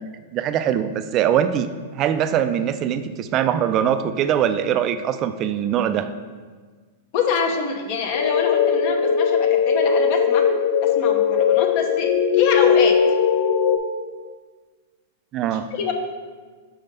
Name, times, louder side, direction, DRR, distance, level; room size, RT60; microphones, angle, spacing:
voice 1, 0.3-1.7 1.9-6.1 15.3-15.7, right 9 dB, 35° right, 11 dB, 0.3 m, -22 dB
voice 2, 7.1-10.5 10.8-13.0 15.5-15.9, left 6 dB, 55° left, 3 dB, 0.8 m, -25 dB
sound 1, 8.1-13.8, left 7 dB, 85° left, 0.5 m, -19 dB
5.4 x 3.5 x 5.2 m, 1.5 s
hypercardioid pair, 120°, 0 cm